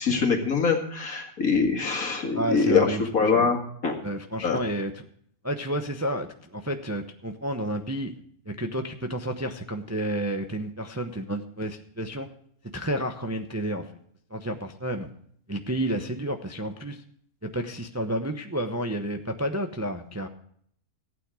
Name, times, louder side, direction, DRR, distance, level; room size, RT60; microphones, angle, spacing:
voice 1, 0.0-3.9 4.4-4.6, left 5 dB, 65° left, 2 dB, 2.5 m, -24 dB
voice 2, 2.3-3.0 3.3-3.5 4.0-5.0 5.4-8.1 8.5-12.3 12.7-13.9 14.3-15.1 15.5-17.0 17.4-20.3, right 1 dB, 15° right, 5 dB, 0.7 m, -30 dB
15.0 x 9.2 x 4.9 m, 0.64 s
omnidirectional pair, 1.6 m